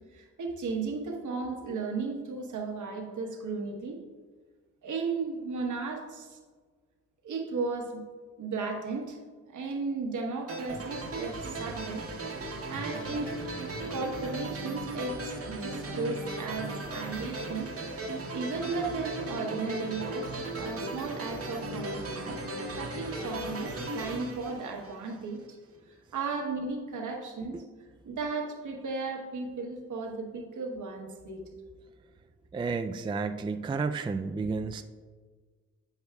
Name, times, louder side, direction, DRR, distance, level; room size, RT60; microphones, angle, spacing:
voice 1, 0.1-4.0 4.8-6.4 7.2-8.0 8.4-9.2 9.5-12.1 12.7-13.3 13.9-17.7 18.3-22.4 22.7-25.4 25.9-27.6 28.0-31.4, right 4 dB, 70° right, 2 dB, 1.1 m, -35 dB
sound 1, 10.5-25.3, right 2 dB, 45° right, 1.1 m, -37 dB
voice 2, 32.5-34.8, right 4 dB, 15° right, 8 dB, 0.3 m, -31 dB
7.9 x 6.9 x 2.3 m, 1.5 s
supercardioid pair, 45°, 31 cm